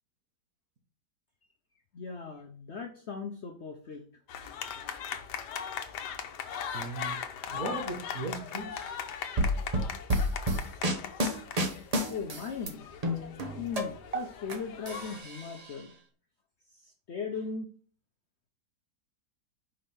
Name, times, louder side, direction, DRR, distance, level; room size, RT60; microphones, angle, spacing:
voice 1, 1.9-4.0 12.1-12.9 13.6-15.9 16.8-17.7, left 5 dB, 55° left, 3 dB, 0.8 m, -38 dB
sound 1, 4.3-15.2, left 8 dB, 80° left, 1.4 m, -39 dB
voice 2, 6.7-7.2 7.5-9.0, right 3 dB, 55° right, 4 dB, 1.6 m, -38 dB
sound 2, 9.4-12.7 13.0-14.6 14.9-15.7, equal, 30° right, 0.8 m, -29 dB
5.2 x 5.1 x 4.3 m, 0.44 s
omnidirectional pair, 1.8 m